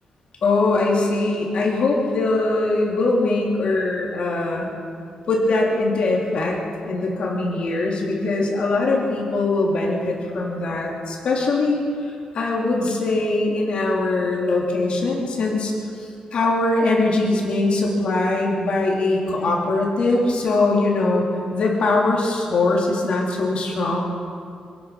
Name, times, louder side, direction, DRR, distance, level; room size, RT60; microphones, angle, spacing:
voice 1, 0.4-4.7 5.3-6.6 6.9-11.8 12.3-15.7 16.3-21.2 21.5-24.0, left 2 dB, 50° left, -2 dB, 3.7 m, -21 dB
26.5 x 17.0 x 6.0 m, 2.4 s
wide cardioid pair, 175°, 2 cm